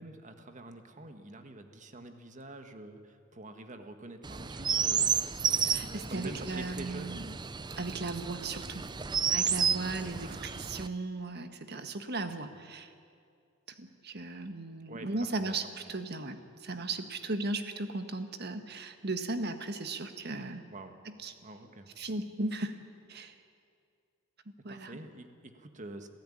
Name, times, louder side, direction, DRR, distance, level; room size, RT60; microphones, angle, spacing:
voice 1, 0.0-5.2 5.8-7.2 10.1-10.5 14.9-15.5 15.8-15.9 20.7-21.0 21.4-21.9 24.7-26.1, right 2 dB, 40° right, 7 dB, 1.7 m, -46 dB
Chirp tweet, 4.2-10.9, right 6 dB, 20° right, 0.5 m, -32 dB
voice 2, 5.6-7.3 7.8-8.8 9.3-12.9 13.8-20.6 21.0-21.3 22.0-22.8 23.1-23.3 24.6-25.0, right 2 dB, 55° right, 8 dB, 1.6 m, -36 dB
26.5 x 15.5 x 10.0 m, 2.3 s
head